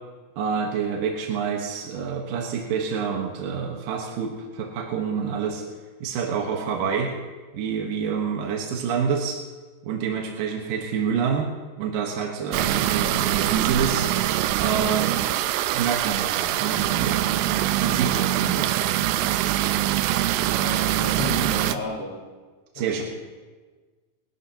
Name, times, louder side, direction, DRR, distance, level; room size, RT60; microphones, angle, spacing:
voice 1, 0.4-5.6 6.0-7.1 7.5-9.4 9.8-11.5 11.8-14.1 14.6-17.2 17.8-18.7 22.7-23.0, right 6 dB, 65° right, 0 dB, 2.5 m, -27 dB
sound 1, 12.5-21.8, right 13 dB, 90° right, 2.2 m, -23 dB
voice 2, 20.5-22.2 22.8-23.0, left 1 dB, 65° left, -9 dB, 6.9 m, -32 dB
28.0 x 12.0 x 2.9 m, 1.4 s
omnidirectional pair, 5.1 m